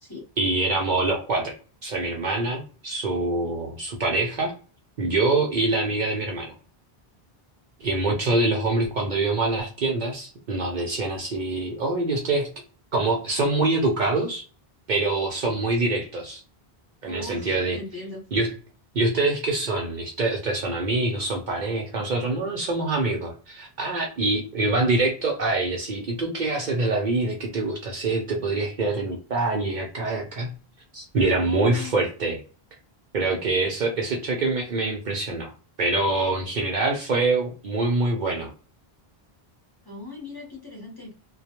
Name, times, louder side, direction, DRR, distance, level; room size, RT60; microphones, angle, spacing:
voice 1, 0.4-1.5 1.8-4.5 5.0-6.5 7.8-12.5 12.9-14.4 14.9-16.4 17.0-17.8 18.3-18.5 18.9-30.5 30.9-32.4 33.1-35.5 35.8-38.5, right 2 dB, 55° right, 0 dB, 0.6 m, -25 dB
voice 2, 17.0-18.2 31.3-32.0 39.8-41.3, left 2 dB, 25° left, -4 dB, 0.8 m, -38 dB
2.3 x 2.2 x 2.8 m, 0.36 s
omnidirectional pair, 1.0 m